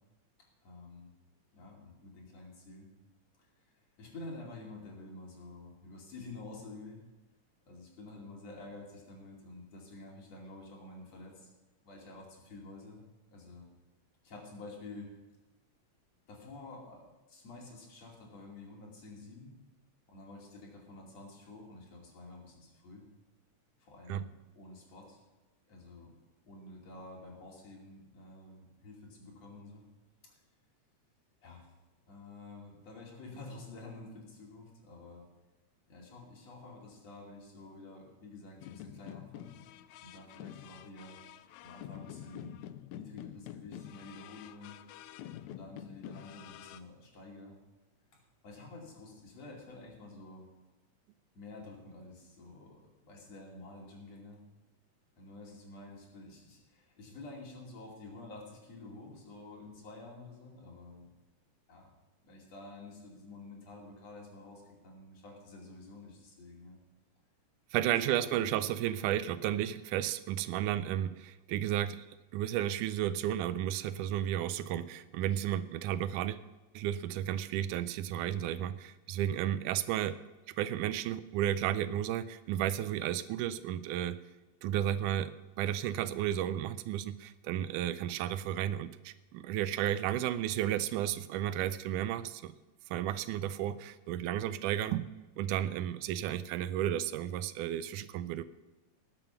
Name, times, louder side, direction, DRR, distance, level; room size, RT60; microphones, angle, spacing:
voice 1, 0.6-1.1 1.5-2.9 3.4-3.5 4.0-7.0 7.7-11.5 11.8-13.0 13.3-13.7 14.2-15.1 16.3-17.0 17.3-19.5 20.1-23.0 23.8-25.2 25.7-26.1 26.5-29.8 30.2-30.4 31.4-31.7 32.1-35.2 35.9-39.5 40.0-41.2 41.6-42.6 42.9-44.8 45.5-47.6 48.4-50.5 51.4-54.4 55.2-61.1 61.7-61.9 62.2-66.8 67.9-68.8, left 2 dB, 55° left, -2 dB, 3.8 m, -49 dB
sound 1, 38.6-46.8, left 12 dB, 80° left, 1.7 m, -48 dB
voice 2, 67.7-72.1 72.3-76.4 76.7-80.2 80.6-84.2 84.6-85.3 85.6-92.5 92.9-95.1 95.4-98.4, right 11 dB, 85° right, 14 dB, 2.1 m, -33 dB
18.5 x 7.6 x 5.9 m, 1.1 s
omnidirectional pair, 3.6 m